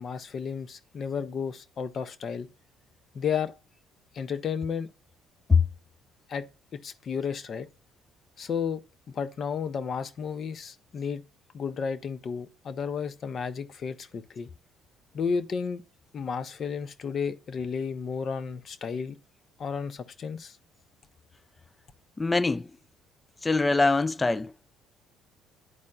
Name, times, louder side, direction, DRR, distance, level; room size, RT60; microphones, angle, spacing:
voice 1, 0.0-2.5 3.1-3.5 4.1-4.9 6.3-6.5 6.7-7.7 8.4-8.8 9.1-11.2 11.5-14.5 15.1-15.8 16.1-19.2 19.6-20.6, left 6 dB, 50° left, 0.7 m, -32 dB
voice 2, 22.2-22.7 23.4-24.5, left 3 dB, 20° left, 0.4 m, -23 dB
11.0 x 4.3 x 2.3 m
supercardioid pair, 70°, 0 cm